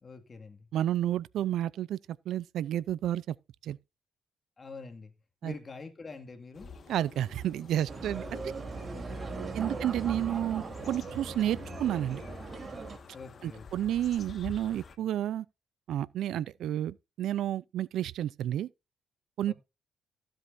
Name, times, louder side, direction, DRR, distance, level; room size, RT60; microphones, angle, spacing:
voice 1, 0.0-0.7 4.6-5.1 5.4-6.7 8.3-8.5 8.9-9.8 13.1-13.9 19.5-19.6, left 4 dB, 30° left, 2.1 m, -46 dB
voice 2, 0.7-2.0 2.3-3.3 3.6-3.8 5.4-5.5 6.9-8.5 9.5-12.2 13.4-15.5 15.9-18.7 19.4-19.5, right 11 dB, 75° right, 0.5 m, -31 dB
sound 1, 6.5-15.0, left 5 dB, 50° left, 1.6 m, -48 dB
sound 2, 7.9-13.0, right 4 dB, 40° right, 3.5 m, -39 dB
15.0 x 7.6 x 2.6 m
cardioid pair, 90°, 0 cm